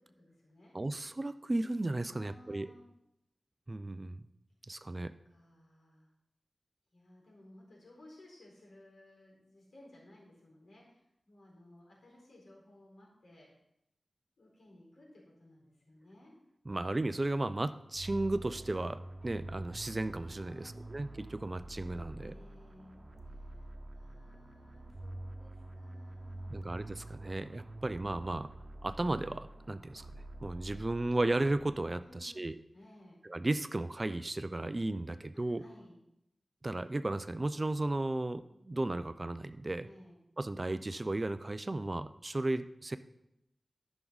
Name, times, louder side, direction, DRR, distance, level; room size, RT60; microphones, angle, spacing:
voice 1, 0.1-0.7 2.1-2.8 5.3-6.1 6.9-13.5 14.4-16.3 20.4-21.0 22.2-26.7 32.0-32.4 32.7-33.2 35.6-36.0 39.8-40.2, left 1 dB, 85° left, -4 dB, 4.4 m, -58 dB
voice 2, 0.7-2.7 3.7-4.2 4.7-5.1 16.7-22.3 26.5-28.5 28.8-30.1 30.4-32.5 33.3-35.6 36.6-39.9 40.4-43.0, right 2 dB, 35° right, 12 dB, 0.5 m, -34 dB
sound 1, 17.9-32.1, right 1 dB, 50° right, 1.2 m, -47 dB
13.5 x 6.1 x 4.0 m, 0.83 s
wide cardioid pair, 65°, 0 cm